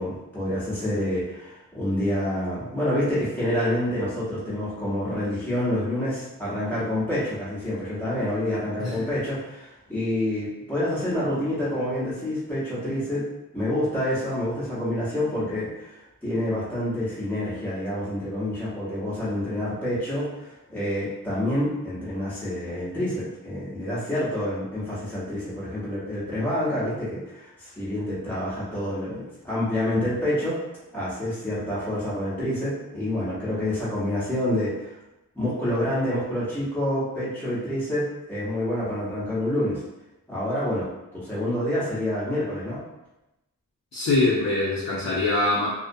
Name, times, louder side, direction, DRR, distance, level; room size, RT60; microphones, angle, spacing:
voice 1, 0.0-13.2 13.5-30.6 30.9-34.9 35.3-39.8 40.3-40.9 41.1-42.8, left 1 dB, 5° left, -10 dB, 0.9 m, -27 dB
voice 2, 43.9-45.7, left 2 dB, 50° left, -5 dB, 0.5 m, -23 dB
2.4 x 2.1 x 2.5 m, 0.95 s
wide cardioid pair, 90°, 34 cm